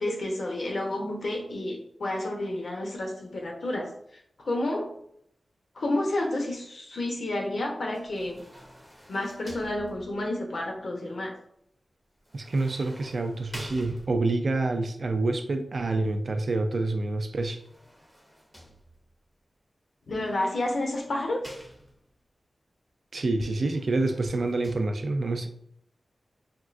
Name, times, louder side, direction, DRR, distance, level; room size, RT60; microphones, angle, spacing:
voice 1, 0.0-3.9 4.4-4.9 5.7-8.4 9.1-11.3 20.1-21.5, left 1 dB, 75° left, 0 dB, 0.7 m, -30 dB
sound 1, 7.9-10.4 12.2-14.5 17.4-19.2 20.2-22.2 23.6-24.8, equal, ahead, 0.5 m, -48 dB
voice 2, 12.3-17.6 23.1-25.5, right 2 dB, 60° right, 6 dB, 0.3 m, -27 dB
3.6 x 2.3 x 2.4 m, 0.70 s
wide cardioid pair, 100°, 0 cm